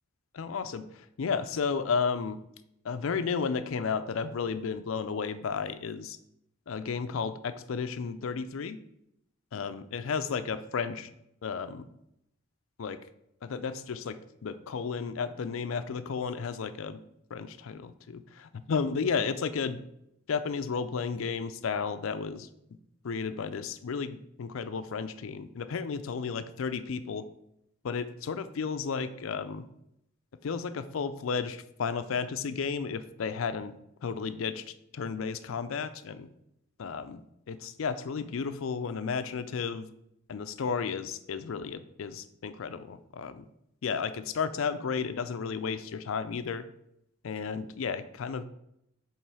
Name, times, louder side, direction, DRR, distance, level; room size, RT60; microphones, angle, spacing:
voice 1, 0.3-2.4 2.8-6.2 6.7-8.8 9.5-11.1 11.4-11.8 12.8-13.0 13.4-17.0 17.3-19.8 20.3-22.5 23.0-27.2 27.8-29.6 30.4-33.7 34.0-34.6 34.9-36.3 36.8-37.2 37.5-39.9 40.3-43.4 43.8-46.6 47.2-48.4, left 5 dB, 75° left, 12 dB, 0.4 m, -33 dB
7.3 x 3.1 x 4.8 m, 0.80 s
head